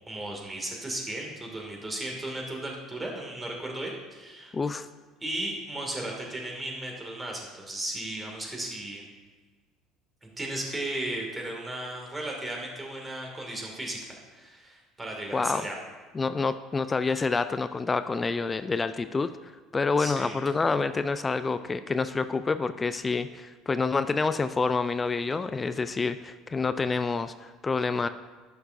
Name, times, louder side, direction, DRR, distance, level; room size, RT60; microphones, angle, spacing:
voice 1, 0.1-4.6 5.2-9.0 10.2-15.8 20.0-20.4, right 1 dB, 20° right, 0 dB, 2.2 m, -35 dB
voice 2, 4.5-4.9 15.3-15.7 16.1-28.1, left 4 dB, 25° left, 12 dB, 0.3 m, -28 dB
11.0 x 6.6 x 2.6 m, 1.4 s
hypercardioid pair, 65°, 0 cm